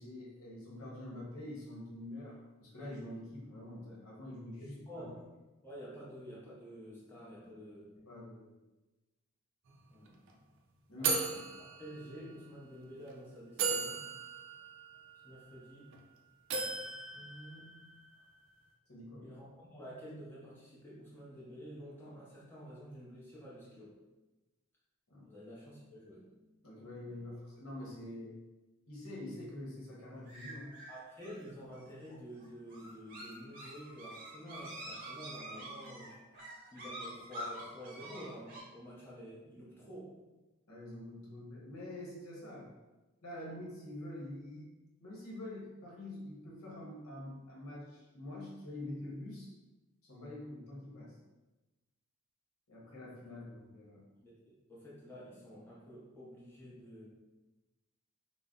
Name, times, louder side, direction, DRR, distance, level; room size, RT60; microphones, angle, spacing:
voice 1, 0.0-5.0 8.1-8.5 10.9-11.2 18.9-19.3 25.1-25.3 26.6-28.4 28.9-30.7 40.7-42.7 43.2-44.7 45.0-49.5 50.0-51.2 52.7-54.0, left 1 dB, 70° left, -5 dB, 0.9 m, -46 dB
voice 2, 4.9-5.2 5.6-7.9 9.9-10.2 11.0-11.2 11.8-14.1 15.2-16.0 17.1-17.9 19.2-24.0 25.2-26.3 30.9-36.1 36.7-40.2 54.2-57.1, equal, 10° left, -8 dB, 0.7 m, -49 dB
sound 1, 9.7-9.8 10.1-10.3 11.0-12.5 13.1-13.2 13.6-16.0 16.5-18.1, right 4 dB, 60° right, 0.4 m, -37 dB
sound 2, 30.3-38.6, right 1 dB, 40° right, 0.7 m, -47 dB
2.5 x 2.0 x 3.5 m, 1.1 s
head